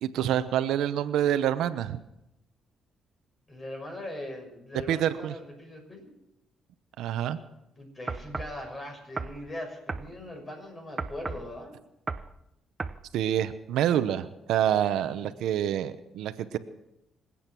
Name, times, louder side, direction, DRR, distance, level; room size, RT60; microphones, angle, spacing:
voice 1, 0.0-2.0 4.9-5.3 7.0-7.4 13.1-16.6, right 10 dB, 85° right, 11 dB, 0.9 m, -27 dB
voice 2, 3.5-6.1 7.8-11.8 15.1-15.2, left 1 dB, 30° left, 3 dB, 6.5 m, -40 dB
sound 1, 8.1-8.6 9.2-9.4 9.9-10.1 11.0-11.5 12.1-12.3 12.8-13.0, right 4 dB, 30° right, 0.7 m, -34 dB
26.0 x 8.7 x 6.1 m, 0.86 s
cardioid pair, 90°, 0 cm